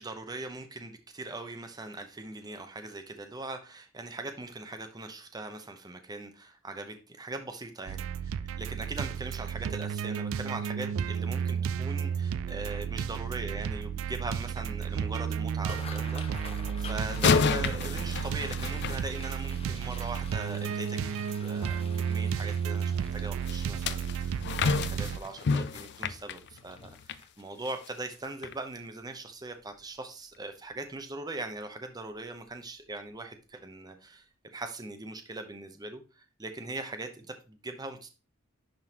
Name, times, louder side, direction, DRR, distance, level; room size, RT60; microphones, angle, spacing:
voice 1, 0.0-24.3 24.6-38.1, right 2 dB, 20° right, 7 dB, 0.7 m, -41 dB
sound 1, 7.9-25.2, right 7 dB, 70° right, 0.3 m, -32 dB
sound 2, 15.5-28.6 29.1-29.4 29.7-30.1 30.6-30.7 31.9-32.1 32.5-32.6 33.1-33.2, left 4 dB, 30° left, 0.9 m, -49 dB
sound 3, 17.1-19.7 23.5-27.2 27.7-27.9 28.4-28.5, left 5 dB, 55° left, 0.5 m, -30 dB
10.5 x 3.7 x 2.9 m, 0.32 s
head